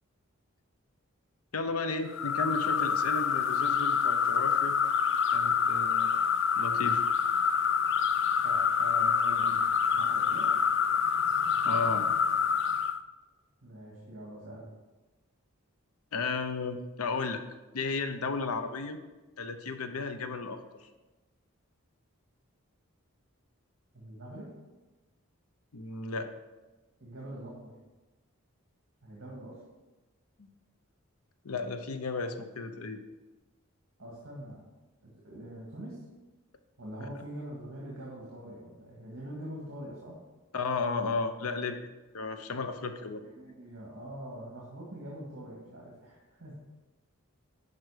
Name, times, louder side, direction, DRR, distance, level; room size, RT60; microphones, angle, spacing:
voice 1, 1.5-4.8 5.3-6.1 6.6-7.0 11.6-12.1 16.1-17.4 17.7-19.0 19.4-20.9 25.7-26.3 30.4-30.5 31.4-33.0 37.0-37.1 40.5-41.9 42.1-43.2, left 3 dB, 90° left, 8 dB, 0.8 m, -34 dB
sound 1, 2.1-13.0, left 6 dB, 55° left, 0.4 m, -27 dB
voice 2, 8.4-9.6 9.9-10.5 13.6-14.7 23.9-24.5 27.0-27.7 29.0-29.6 34.0-34.7 35.0-36.0 36.8-40.2 43.2-46.5, right 1 dB, 60° right, -4 dB, 2.0 m, -44 dB
11.0 x 5.0 x 5.0 m, 1.1 s
head